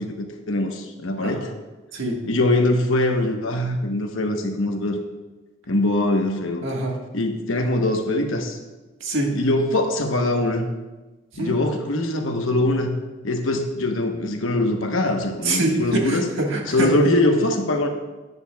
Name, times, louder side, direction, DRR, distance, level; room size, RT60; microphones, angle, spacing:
voice 1, 0.0-1.5 2.3-5.0 5.7-6.6 7.1-8.6 9.3-10.7 11.4-12.9 13.2-16.2 16.7-17.9, left 1 dB, 80° left, 4 dB, 1.1 m, -22 dB
voice 2, 6.6-7.0 9.0-9.3 11.3-11.5 15.4-16.9, right 2 dB, 70° right, 0 dB, 1.6 m, -24 dB
11.0 x 9.7 x 2.3 m, 1.2 s
head